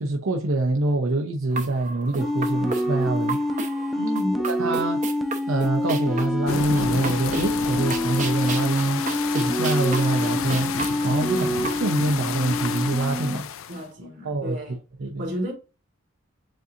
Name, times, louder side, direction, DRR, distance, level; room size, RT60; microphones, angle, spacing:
voice 1, 0.0-3.4 4.5-5.0 5.5-10.7 11.0-11.5 11.8-13.5 14.2-14.6 15.0-15.3, right 2 dB, 90° right, 0.7 m, -25 dB
sound 1, 1.5-11.8, right 3 dB, 40° right, 0.7 m, -34 dB
sound 2, 2.2-13.4, left 1 dB, ahead, 0.4 m, -27 dB
voice 2, 3.9-4.4 11.3-11.6 13.7-14.8 15.2-15.5, equal, 55° right, 2.3 m, -31 dB
sound 3, 6.5-13.8, left 7 dB, 75° left, 0.4 m, -31 dB
7.5 x 2.6 x 2.8 m
head